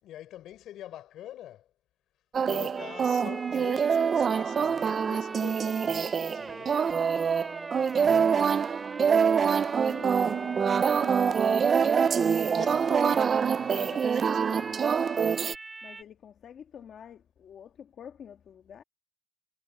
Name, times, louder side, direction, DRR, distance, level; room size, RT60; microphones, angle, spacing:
voice 1, 0.0-1.7 2.5-6.1 6.3-6.8 12.6-14.8, left 12 dB, 90° left, 4.0 m, -45 dB
sound 1, 2.3-15.5, right 6 dB, 40° right, 0.4 m, -25 dB
sound 2, 2.8-16.0, right 3 dB, 20° right, 3.5 m, -42 dB
voice 2, 9.3-11.9 15.8-18.8, left 8 dB, 55° left, 1.6 m, -48 dB
cardioid pair, 130°, 0 cm